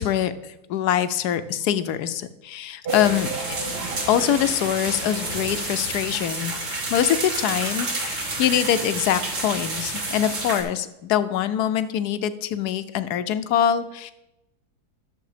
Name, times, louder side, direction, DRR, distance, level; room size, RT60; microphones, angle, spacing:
voice 1, 0.0-3.6 4.1-6.5 6.9-14.1, left 10 dB, 80° left, 12 dB, 1.2 m, -24 dB
sound 1, 2.8-5.7 6.2-6.3 6.5-6.6 6.9-7.0 7.9-8.0 8.4-8.5, right 5 dB, 70° right, 0.6 m, -36 dB
sound 2, 2.9-10.6, right 2 dB, 50° right, 2.0 m, -30 dB
11.5 x 7.1 x 5.0 m, 0.93 s
omnidirectional pair, 1.7 m